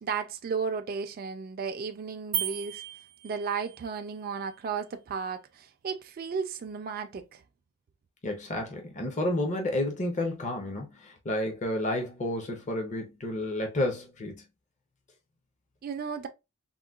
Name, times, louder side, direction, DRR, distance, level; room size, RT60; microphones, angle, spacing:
voice 1, 0.0-2.8 3.2-7.4 15.8-16.3, right 5 dB, 40° right, 0.3 m, -34 dB
sound 1, 2.3-3.9, right 11 dB, 90° right, 0.6 m, -35 dB
voice 2, 8.2-14.4, left 1 dB, 35° left, 0.6 m, -31 dB
3.7 x 2.1 x 2.2 m
head